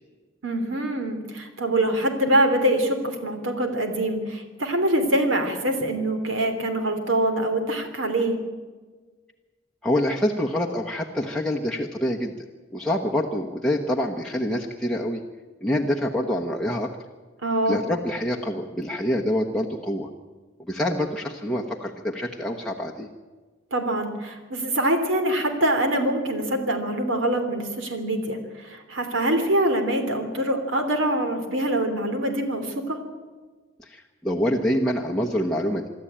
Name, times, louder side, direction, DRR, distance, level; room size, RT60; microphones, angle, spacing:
voice 1, 0.4-8.4 17.4-17.8 23.7-33.0, right 1 dB, 85° right, 6 dB, 3.1 m, -24 dB
voice 2, 9.8-12.3 12.7-15.2 15.6-17.0 17.7-20.1 20.7-23.1 33.8-35.9, left 1 dB, 5° left, -2 dB, 1.1 m, -26 dB
24.5 x 12.5 x 8.8 m, 1.4 s
head